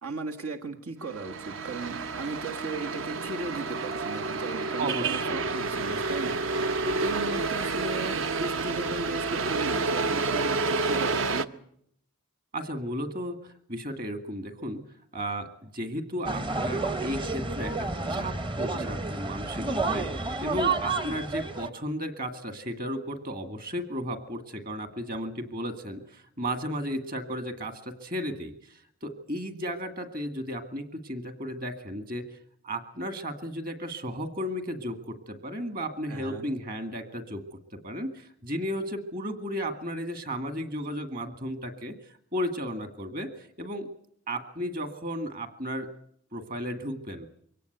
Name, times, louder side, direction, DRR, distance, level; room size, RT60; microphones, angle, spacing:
voice 1, 0.0-6.4 6.8-11.5 36.1-36.5, right 2 dB, 85° right, 2 dB, 1.7 m, -36 dB
sound 1, 1.1-11.5, right 3 dB, 65° right, 0.9 m, -29 dB
voice 2, 4.8-5.5 12.5-14.8 15.1-32.2 32.6-37.4 37.7-43.9 44.3-45.9 46.3-47.3, equal, 45° right, 9 dB, 2.1 m, -34 dB
sound 2, 16.3-21.7, right 3 dB, 25° right, 0.8 m, -30 dB
23.5 x 17.5 x 8.1 m, 0.69 s
head